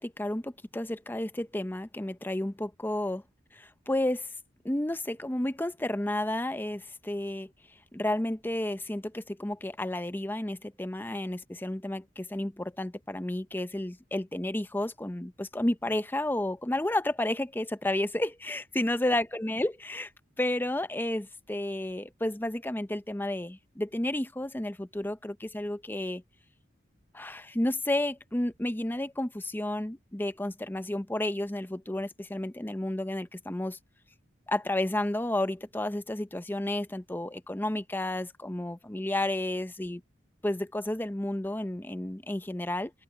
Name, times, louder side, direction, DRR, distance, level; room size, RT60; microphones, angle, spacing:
voice 1, 0.0-3.2 3.5-4.3 4.6-7.5 7.9-20.1 20.4-26.2 27.1-33.8 34.5-40.0 40.4-42.9, left 1 dB, 10° left, 0.6 m, -31 dB
head